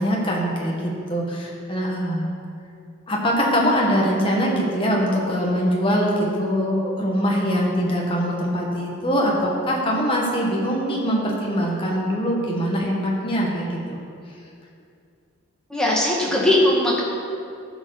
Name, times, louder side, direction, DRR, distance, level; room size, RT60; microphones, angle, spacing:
voice 1, 0.0-2.3 3.1-14.0, equal, 25° left, -2 dB, 1.8 m, -23 dB
voice 2, 15.7-17.0, left 1 dB, 5° left, -5 dB, 2.0 m, -19 dB
15.0 x 5.4 x 6.6 m, 2.5 s
head